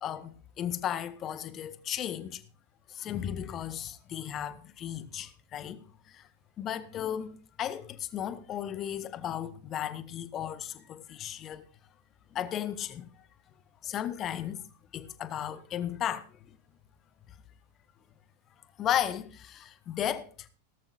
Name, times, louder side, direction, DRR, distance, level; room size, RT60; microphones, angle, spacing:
voice 1, 0.0-2.4 2.9-6.2 6.6-11.6 12.3-13.1 13.8-14.6 14.9-16.2 18.8-20.5, left 10 dB, 30° left, 0.9 m, -35 dB
17.0 x 13.5 x 2.5 m
figure-of-eight pair, 90°, 0 cm